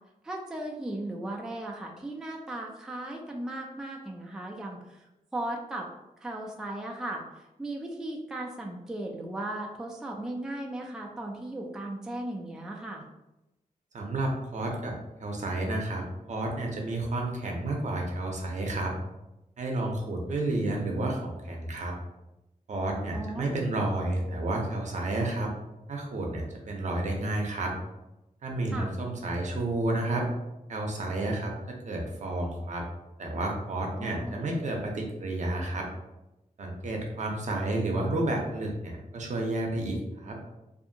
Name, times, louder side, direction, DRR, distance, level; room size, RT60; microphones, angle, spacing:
voice 1, 0.2-5.1 5.3-5.9 6.2-7.2 7.6-13.0 23.1-23.5 28.7-28.9 34.0-34.4, right 1 dB, 5° right, 0 dB, 0.3 m, -36 dB
voice 2, 13.9-18.9 19.6-21.9 22.7-25.5 25.9-27.7 28.4-30.2 30.7-32.8 33.2-35.9 36.6-40.4, right 2 dB, 60° right, 0 dB, 0.6 m, -31 dB
2.7 x 2.5 x 2.6 m, 0.97 s
wide cardioid pair, 135°, 14 cm